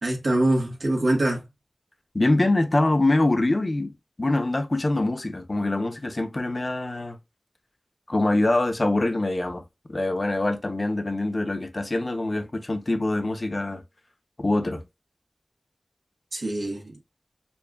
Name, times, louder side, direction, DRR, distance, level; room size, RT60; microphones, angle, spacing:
voice 1, 0.0-1.4 16.3-16.9, right 1 dB, 80° right, 1.3 m, -24 dB
voice 2, 2.1-3.9 4.2-7.2 8.1-9.6 9.9-13.8 14.4-14.8, left 2 dB, 45° left, 0.7 m, -24 dB
6.9 x 2.4 x 2.3 m
wide cardioid pair, 60°, 0 cm